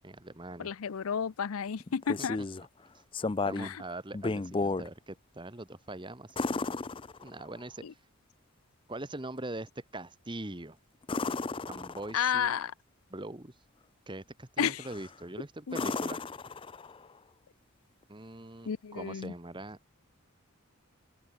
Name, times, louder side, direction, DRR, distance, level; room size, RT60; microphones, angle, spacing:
voice 1, 0.0-0.7 2.2-2.3 3.4-6.4 7.2-7.8 8.9-10.8 11.7-12.5 13.1-13.5 14.1-16.2 18.1-19.8, right 2 dB, 20° right, 1.4 m, -42 dB
voice 2, 0.6-2.4 3.6-3.8 7.8-7.9 12.1-12.7 14.6-14.9 15.7-15.8 18.7-19.3, left 7 dB, 75° left, 0.5 m, -32 dB
sound 1, 1.8-2.7 3.1-3.8 4.1-4.9 6.4-7.6 11.0-12.3 14.8-15.2 15.7-17.1 19.2-19.3, left 3 dB, 25° left, 0.4 m, -34 dB
open air
head